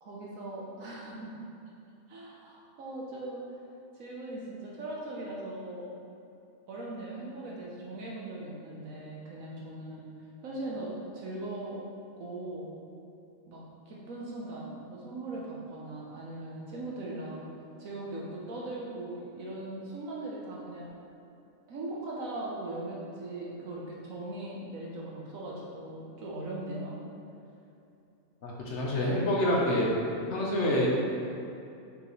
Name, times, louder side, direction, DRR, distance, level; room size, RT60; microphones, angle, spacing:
voice 1, 0.0-1.4 2.1-3.4 3.9-5.9 6.7-10.0 10.4-11.8 12.2-12.7 13.5-17.4 17.8-20.9 21.7-27.0 28.9-29.3, right 2 dB, 80° right, -4 dB, 1.4 m, -39 dB
voice 2, 28.4-29.9 30.3-30.9, left 1 dB, 60° left, -3 dB, 1.2 m, -27 dB
6.7 x 5.4 x 3.2 m, 2.7 s
omnidirectional pair, 1.4 m